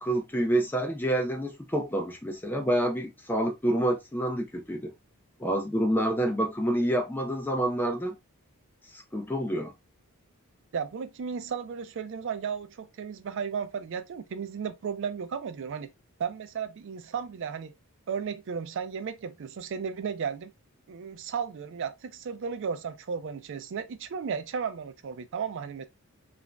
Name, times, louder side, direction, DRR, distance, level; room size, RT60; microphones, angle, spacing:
voice 1, 0.0-4.9 5.4-8.1 8.9-9.7, right 1 dB, 10° left, 0.4 m, -28 dB
voice 2, 10.7-15.9 16.2-17.7 18.1-20.5 20.9-25.8, right 6 dB, 55° right, 0.4 m, -34 dB
2.5 x 2.0 x 3.2 m
head